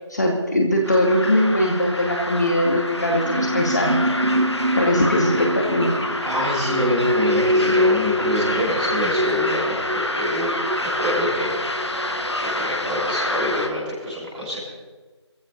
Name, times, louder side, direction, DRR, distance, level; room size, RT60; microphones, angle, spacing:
voice 1, 0.1-4.0 4.8-5.9, left 1 dB, 40° left, 0 dB, 2.2 m, -20 dB
sound 1, 0.8-13.7, left 1 dB, 70° left, 2.2 m, -28 dB
sound 2, 2.7-13.0 13.3-13.5, equal, 85° right, 1.1 m, -25 dB
voice 2, 6.2-10.5 10.8-11.5 11.9-14.6, left 1 dB, 5° right, -11 dB, 3.9 m, -26 dB
23.0 x 15.0 x 4.2 m, 1.3 s
figure-of-eight pair, 170°, 15 cm